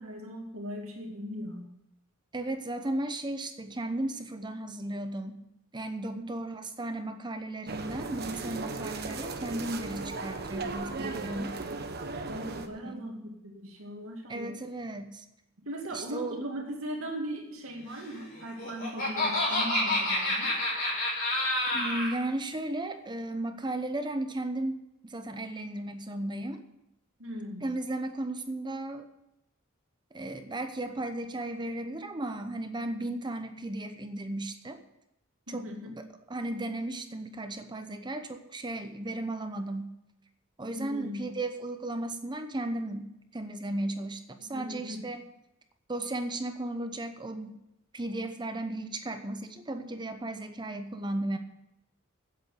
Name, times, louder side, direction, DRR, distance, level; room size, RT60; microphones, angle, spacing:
voice 1, 0.0-1.7 12.3-14.5 15.6-20.5 27.2-27.7 35.5-36.0 40.7-41.4 44.4-45.0, equal, 75° right, -1 dB, 2.4 m, -39 dB
voice 2, 2.3-5.4 5.7-11.6 12.8-13.0 14.3-15.2 15.9-16.5 19.5-19.6 21.7-26.6 27.6-29.1 30.1-34.8 35.5-36.0 36.3-40.0 40.6-45.3 45.9-47.6 47.9-51.4, right 1 dB, 20° right, 7 dB, 0.8 m, -35 dB
sound 1, 7.7-12.7, right 3 dB, 50° right, 1.1 m, -36 dB
Laughter, 18.4-22.1, left 1 dB, 45° left, 5.2 m, -28 dB
9.1 x 8.1 x 9.2 m, 0.85 s
head